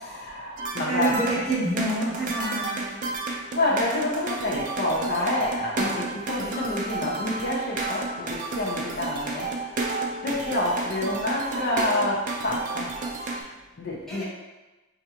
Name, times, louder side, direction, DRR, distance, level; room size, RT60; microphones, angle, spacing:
voice 1, 0.0-1.2 3.5-9.7 10.2-12.9 13.8-14.2, left 1 dB, 50° left, -4 dB, 0.6 m, -28 dB
sound 1, 0.6-13.4, right 3 dB, 35° right, 0.4 m, -31 dB
voice 2, 0.9-3.0 14.1-14.2, right 1 dB, ahead, -9 dB, 1.0 m, -28 dB
4.4 x 2.5 x 2.8 m, 1.1 s
head